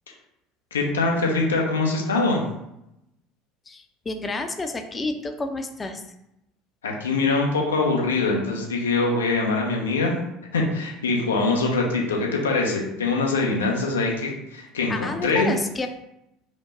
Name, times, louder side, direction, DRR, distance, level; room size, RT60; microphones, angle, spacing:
voice 1, 0.7-2.4 6.8-10.1 10.5-15.5, left 3 dB, 75° left, 0 dB, 0.8 m, -23 dB
voice 2, 3.7-6.0 14.9-15.9, left 2 dB, 25° left, 6 dB, 0.6 m, -30 dB
5.1 x 2.1 x 4.1 m, 0.85 s
figure-of-eight pair, 65°, 0 cm